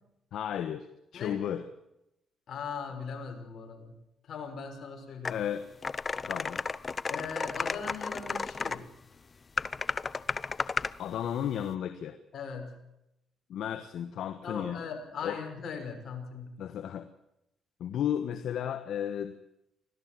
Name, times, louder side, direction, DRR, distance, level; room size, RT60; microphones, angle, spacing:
voice 1, 0.3-0.9 1.1-1.6 5.3-5.7 6.3-6.6 11.0-12.2 13.5-14.8 15.2-15.4 16.6-17.1 17.8-19.4, left 9 dB, 75° left, 9 dB, 1.4 m, -33 dB
voice 2, 1.1-1.6 2.5-3.9 4.3-5.4 7.1-8.9 12.3-12.8 14.4-16.6, left 5 dB, 60° left, 4 dB, 6.0 m, -39 dB
sound 1, 5.2-5.4 5.8-8.8 9.6-10.9, left 4 dB, 35° left, 0.8 m, -33 dB
25.0 x 16.5 x 7.8 m, 0.86 s
cardioid pair, 90°, 0 cm